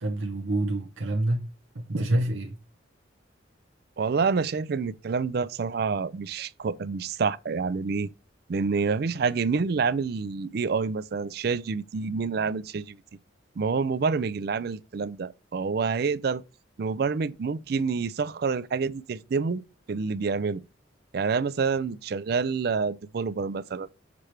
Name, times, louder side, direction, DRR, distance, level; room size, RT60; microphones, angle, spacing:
voice 1, 0.0-1.4 1.7-2.6, right 1 dB, 90° right, 1.0 m, -27 dB
voice 2, 4.0-8.1 8.5-13.0 13.6-16.4 16.8-19.6 19.9-20.6 21.1-23.9, right 5 dB, 50° right, 0.4 m, -27 dB
6.7 x 3.3 x 4.3 m
head